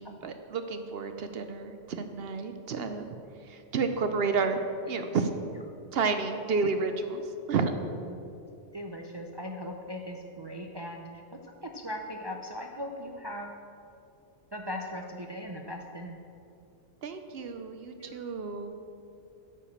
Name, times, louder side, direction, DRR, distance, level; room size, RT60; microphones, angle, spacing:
voice 1, 0.0-3.1 3.4-5.3 5.9-7.7 17.0-18.7, right 4 dB, 60° right, 7 dB, 0.8 m, -31 dB
voice 2, 8.7-13.5 14.5-16.2 18.0-18.2, equal, 40° right, 2 dB, 0.3 m, -39 dB
9.7 x 4.9 x 7.0 m, 2.7 s
omnidirectional pair, 1.2 m